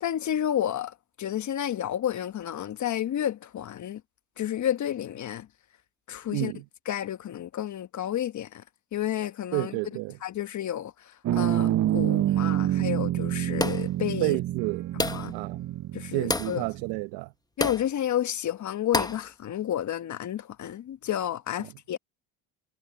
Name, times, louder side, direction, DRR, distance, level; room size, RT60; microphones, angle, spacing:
voice 1, 0.0-4.0 4.4-5.5 6.1-6.5 6.9-8.6 8.9-9.8 10.2-14.4 15.1-15.3 15.9-16.6 17.6-22.0, left 11 dB, 45° left, 1.3 m, -31 dB
voice 2, 6.3-6.6 9.5-10.2 14.2-14.9 15.3-15.7 16.1-17.3 21.6-21.7, right 24 dB, 75° right, 1.1 m, -30 dB
sound 1, 11.2-17.0, right 13 dB, 45° right, 0.7 m, -27 dB
sound 2, 13.6-14.0 15.0-15.4 16.3-16.6 17.6-17.9 18.9-19.3, left 2 dB, 10° left, 0.9 m, -28 dB
supercardioid pair, 85°, 41 cm